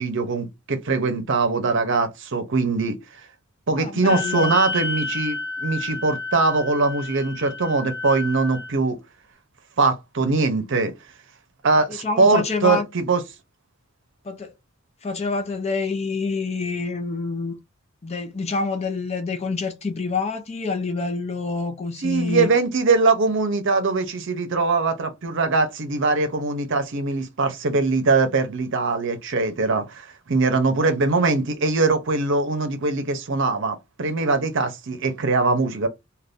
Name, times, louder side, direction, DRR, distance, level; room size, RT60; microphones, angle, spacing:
voice 1, 0.0-3.0 3.7-9.0 9.8-10.9 11.6-13.2 22.0-35.9, right 3 dB, 60° right, 0.7 m, -22 dB
voice 2, 3.7-4.5 11.9-12.9 14.2-14.5 15.0-17.6 18.0-22.5 30.8-30.9 31.1-31.4, left 4 dB, 30° left, 0.5 m, -27 dB
Wind instrument woodwind instrument, 4.0-8.7, left 3 dB, 50° left, 1.0 m, -31 dB
2.5 x 2.3 x 3.4 m
head